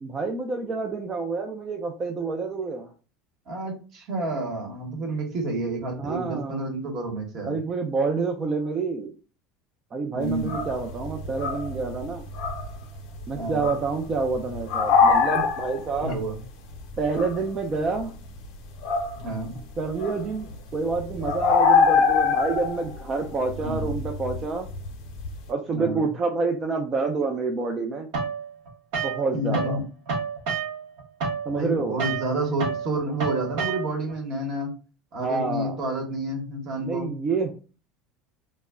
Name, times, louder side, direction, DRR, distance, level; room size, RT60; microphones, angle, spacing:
voice 1, 0.0-2.9 6.0-6.7 7.5-9.1 9.9-12.2 13.3-16.2 17.0-18.1 19.8-24.7 25.5-28.1 29.0-29.8 31.4-32.0 35.2-35.8 36.8-37.5, right 4 dB, 30° right, 2 dB, 0.4 m, -28 dB
voice 2, 3.5-7.6 10.1-10.5 13.3-13.7 16.0-16.4 19.1-19.6 23.6-23.9 25.7-26.1 29.3-29.8 31.5-34.7 35.1-37.1, right 1 dB, 50° right, 2 dB, 1.0 m, -29 dB
sound 1, 10.2-19.6 19.9-25.4, left 5 dB, 65° left, 0.6 m, -25 dB
sound 2, 28.1-29.8 30.1-34.1, right 5 dB, 75° right, 0.8 m, -30 dB
2.2 x 2.0 x 3.5 m, 0.36 s
supercardioid pair, 125°, 0 cm